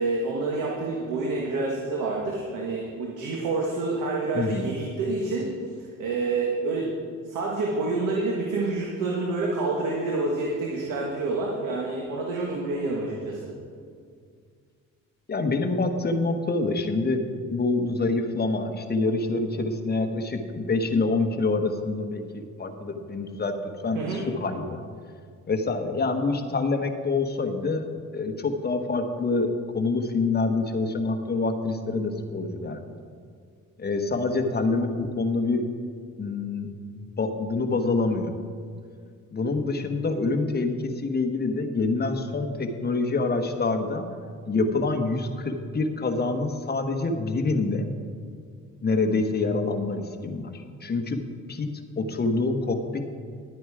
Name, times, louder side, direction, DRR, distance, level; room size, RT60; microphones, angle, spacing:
voice 1, 0.0-5.6 6.0-6.9 7.2-13.4 23.9-24.2, right 3 dB, 90° right, -2 dB, 1.6 m, -28 dB
voice 2, 15.3-17.2 17.5-23.5 23.8-24.8 25.5-27.9 28.1-32.9 33.8-35.6 36.2-36.7 36.9-38.3 39.3-44.1 44.5-47.9 48.8-51.2 51.5-51.7 52.0-53.0, left 3 dB, 35° left, 5 dB, 1.2 m, -26 dB
11.0 x 9.2 x 4.9 m, 2.1 s
cardioid pair, 90°, 30 cm